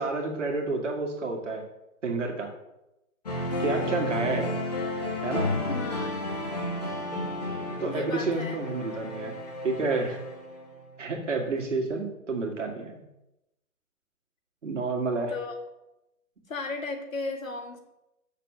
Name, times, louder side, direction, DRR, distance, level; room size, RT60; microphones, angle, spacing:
voice 1, 0.0-1.6 2.0-2.5 3.6-4.5 5.2-5.5 7.8-9.3 9.6-10.2 11.0-13.0 14.6-15.3, right 3 dB, 55° right, 2 dB, 2.1 m, -29 dB
sound 1, 3.3-10.8, left 1 dB, 25° left, 1.4 m, -32 dB
voice 2, 5.7-6.2 7.8-8.6 11.5-11.6 15.3-15.5 16.5-17.8, left 3 dB, 65° left, 4 dB, 2.1 m, -35 dB
6.7 x 6.7 x 6.5 m, 0.91 s
hypercardioid pair, 180°, 44 cm